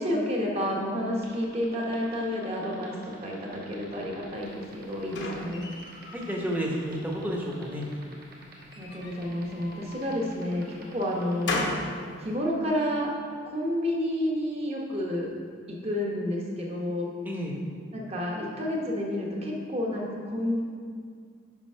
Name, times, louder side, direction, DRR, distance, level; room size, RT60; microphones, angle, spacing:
voice 1, 0.0-5.7 8.8-11.6 12.2-13.1 13.4-15.3 15.7-17.1 17.9-20.6, left 1 dB, 30° right, -1 dB, 1.1 m, -30 dB
sound 1, 1.1-11.4, right 3 dB, 55° right, 1.2 m, -49 dB
sound 2, 4.5-6.4 6.8-7.6 8.6-10.0 10.6-11.9, left 2 dB, 65° left, 0.9 m, -36 dB
voice 2, 6.1-7.8 17.2-17.6, equal, 10° right, -2 dB, 0.9 m, -31 dB
6.0 x 5.2 x 5.6 m, 2.1 s
head